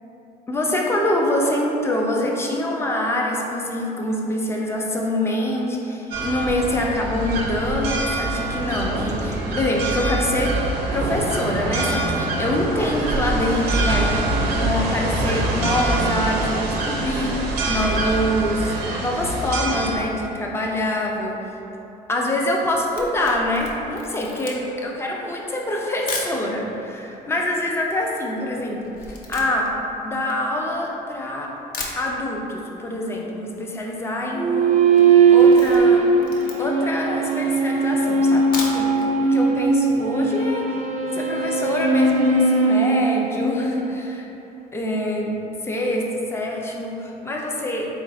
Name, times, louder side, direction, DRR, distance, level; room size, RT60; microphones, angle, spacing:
voice 1, 0.5-21.4 22.1-29.7 30.0-31.5 32.0-34.8 35.3-36.0 36.6-40.8 41.1-44.3 44.7-47.9, left 1 dB, 15° left, -1 dB, 0.5 m, -25 dB
sound 1, 6.1-20.0, right 2 dB, 85° right, 0.6 m, -24 dB
Camera, 22.8-26.4 27.1-27.2 27.4-31.1 31.4-31.5 31.7-32.6 32.9-33.0 33.3-33.4 33.5-34.0 34.3-34.5 34.9-36.9 37.4-37.5 38.3-39.1 39.5-39.6 39.9-40.0, left 3 dB, 60° left, 0.6 m, -35 dB
sound 2, 34.4-44.0, right 4 dB, 45° right, 0.5 m, -18 dB
4.0 x 2.5 x 4.0 m, 3.0 s
cardioid pair, 110°, 17 cm